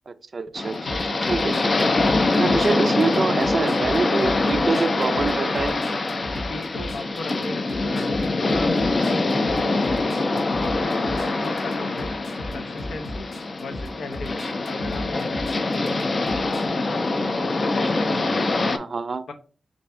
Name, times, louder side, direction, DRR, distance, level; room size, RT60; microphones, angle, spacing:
voice 1, 0.1-1.9 2.3-5.7 18.7-19.2, right 4 dB, 45° right, 11 dB, 0.3 m, -26 dB
sound 1, 0.6-18.8, left 2 dB, 40° left, 0.4 m, -24 dB
sound 2, 0.9-16.6, left 1 dB, 60° left, 1.0 m, -36 dB
voice 2, 6.5-8.7 9.0-12.1 12.5-13.3 13.6-17.1 17.6-18.7 19.3-19.4, left 3 dB, 90° left, 5 dB, 0.6 m, -38 dB
sound 3, 8.3-11.2, equal, 10° right, 0.8 m, -42 dB
3.4 x 2.6 x 4.2 m, 0.40 s
wide cardioid pair, 115°, 0 cm